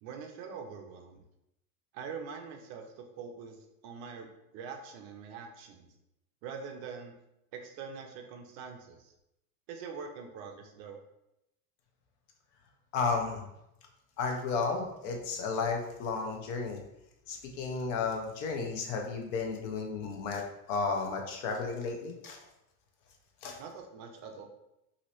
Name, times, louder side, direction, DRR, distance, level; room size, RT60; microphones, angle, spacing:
voice 1, 0.0-1.2 1.9-5.9 6.4-7.1 7.5-9.1 9.7-11.0 23.6-24.5, right 5 dB, 40° right, 3 dB, 0.4 m, -44 dB
voice 2, 12.9-13.5 14.2-16.8 17.3-22.4 23.4-23.6, left 4 dB, 55° left, 2 dB, 0.7 m, -33 dB
2.8 x 2.7 x 3.0 m, 0.85 s
supercardioid pair, 145°, 45 cm